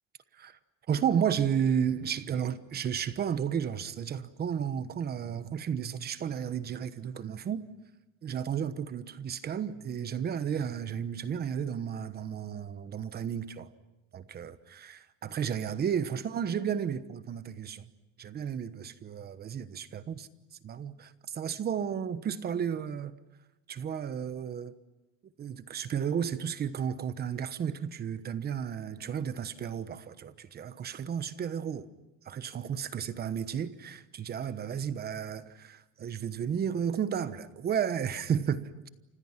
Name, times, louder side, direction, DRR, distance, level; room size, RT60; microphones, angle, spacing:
voice 1, 0.9-7.7 8.2-13.7 14.1-17.9 18.2-20.1 20.6-23.2 23.7-24.7 25.4-31.9 32.2-38.7, right 8 dB, 30° right, 1.1 m, -33 dB
30.0 x 27.0 x 5.9 m
cardioid pair, 170°, 30 cm